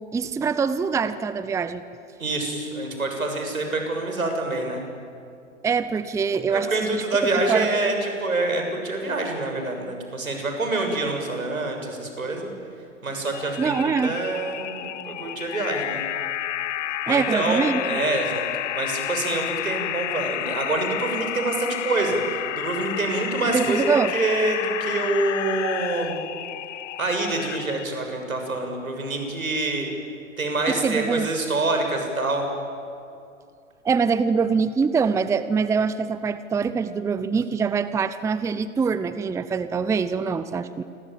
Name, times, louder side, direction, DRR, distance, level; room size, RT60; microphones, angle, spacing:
voice 1, 0.1-1.8 5.6-7.0 7.3-7.7 13.6-14.2 17.0-18.0 23.5-24.1 30.7-31.3 33.8-40.8, right 5 dB, 5° right, 14 dB, 0.7 m, -24 dB
voice 2, 2.2-4.8 6.5-12.5 13.0-16.0 17.1-18.5 18.7-26.2 27.0-29.9 30.4-32.5, right 2 dB, 85° right, 3 dB, 7.0 m, -26 dB
sound 1, 13.3-27.9, left 12 dB, 60° left, 1.0 m, -31 dB
28.5 x 23.0 x 8.8 m, 2.5 s
hypercardioid pair, 110°, 41 cm